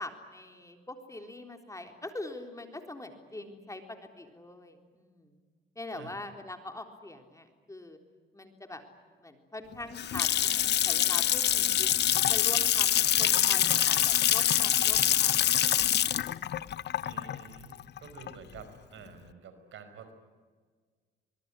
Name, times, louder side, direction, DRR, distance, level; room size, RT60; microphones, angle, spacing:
voice 1, 0.0-5.4 5.8-8.0 8.3-8.8 9.2-16.9, left 2 dB, 15° left, 5 dB, 3.8 m, -43 dB
Water tap faucet / Sink (filling or washing) / Splash splatter, 9.7-18.6, left 11 dB, 60° left, 0.8 m, -25 dB
voice 2, 17.0-20.1, right 6 dB, 75° right, 9 dB, 4.9 m, -49 dB
24.5 x 21.5 x 9.9 m, 1.5 s
cardioid pair, 90°, 20 cm